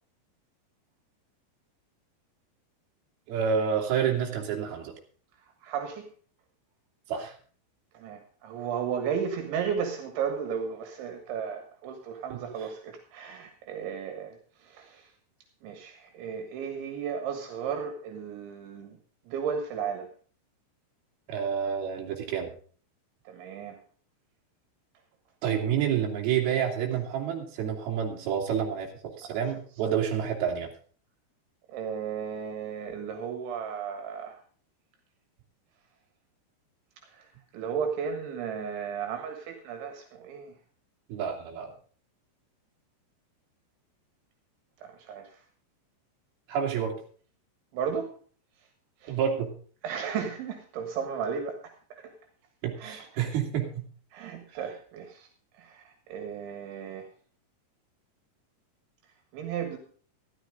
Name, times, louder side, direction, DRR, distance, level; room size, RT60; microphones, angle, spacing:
voice 1, 3.3-4.9 7.1-7.3 12.3-12.4 21.3-22.5 25.4-28.9 29.2-30.7 41.1-41.7 46.5-47.0 49.1-49.5 52.6-53.9, right 8 dB, 60° right, 0 dB, 4.1 m, -29 dB
voice 2, 5.6-6.1 7.9-15.1 15.6-19.0 19.3-20.1 23.3-23.8 29.3-29.4 29.8-30.0 31.7-34.4 37.1-37.3 37.5-40.5 44.8-45.4 47.7-48.1 49.0-49.2 49.8-52.1 52.8-53.2 54.1-55.3 55.6-57.1 59.3-59.8, right 7 dB, 80° right, 5 dB, 3.9 m, -34 dB
13.0 x 13.0 x 3.8 m, 0.42 s
omnidirectional pair, 5.4 m